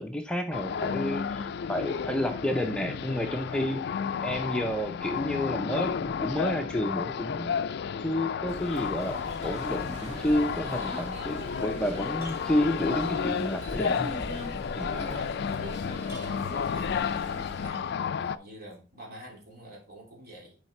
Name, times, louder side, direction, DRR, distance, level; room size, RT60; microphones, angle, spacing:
voice 1, 0.0-3.8 4.2-7.6 8.0-14.1 14.7-14.9, equal, 5° left, 0.6 m, -30 dB
sound 1, 0.5-18.4, left 6 dB, 60° left, 0.4 m, -32 dB
sound 2, 8.5-17.7, equal, 40° right, 2.4 m, -40 dB
sound 3, 11.7-13.2 15.2-15.3 16.0-17.3 18.7-18.8, right 1 dB, 15° right, 1.9 m, -51 dB
voice 2, 16.2-16.9 17.6-20.6, right 1 dB, 55° right, 2.9 m, -47 dB
6.1 x 4.9 x 4.3 m
head